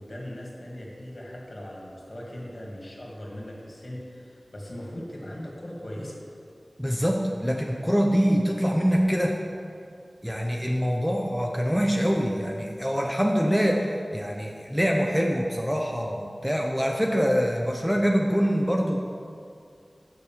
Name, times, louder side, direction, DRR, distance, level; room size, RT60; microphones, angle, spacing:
voice 1, 0.0-6.2, equal, 50° left, -2 dB, 2.0 m, -39 dB
voice 2, 6.8-9.4 10.2-19.0, equal, ahead, 0 dB, 0.7 m, -24 dB
6.7 x 6.6 x 7.1 m, 2.4 s
wide cardioid pair, 65°, 0 cm